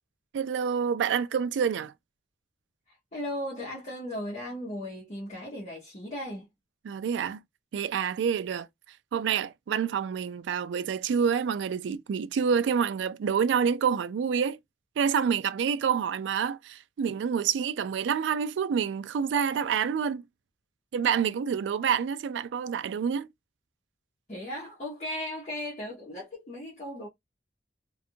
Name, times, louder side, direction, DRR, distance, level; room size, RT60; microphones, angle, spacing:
voice 1, 0.3-1.9 6.8-7.4 7.7-8.7 9.1-14.6 15.0-20.2 20.9-23.3, right 7 dB, 80° right, 0.3 m, -27 dB
voice 2, 2.9-6.5 24.3-27.1, left 1 dB, 40° left, 0.9 m, -37 dB
2.5 x 2.3 x 2.7 m
head